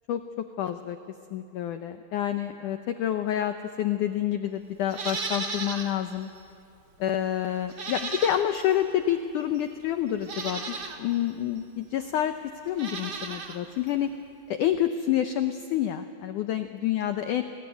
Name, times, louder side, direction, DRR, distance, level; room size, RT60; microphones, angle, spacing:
voice 1, 0.1-1.0 1.3-6.3 7.0-12.4 12.7-14.1 14.5-17.4, left 11 dB, 90° left, 7 dB, 1.8 m, -28 dB
Livestock farm animals working animals, 4.9-6.0 6.4-6.5 7.7-8.7 9.6-9.7 10.2-11.0 12.7-13.6 13.9-14.0, right 4 dB, 50° right, 1.3 m, -35 dB
30.0 x 21.0 x 9.3 m, 2.6 s
omnidirectional pair, 4.8 m